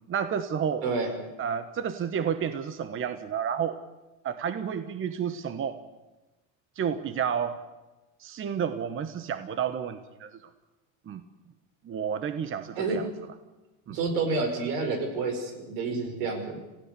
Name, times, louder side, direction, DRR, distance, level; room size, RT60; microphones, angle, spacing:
voice 1, 0.1-0.8 1.4-3.8 4.2-5.8 6.8-7.6 8.2-10.4 11.1-11.2 11.8-13.1 13.9-14.0, right 7 dB, 30° right, 11 dB, 1.2 m, -30 dB
voice 2, 0.8-1.1 12.8-13.0 13.9-16.6, right 4 dB, 80° right, 6 dB, 5.6 m, -29 dB
27.0 x 16.5 x 6.9 m, 1.1 s
supercardioid pair, 120°, 41 cm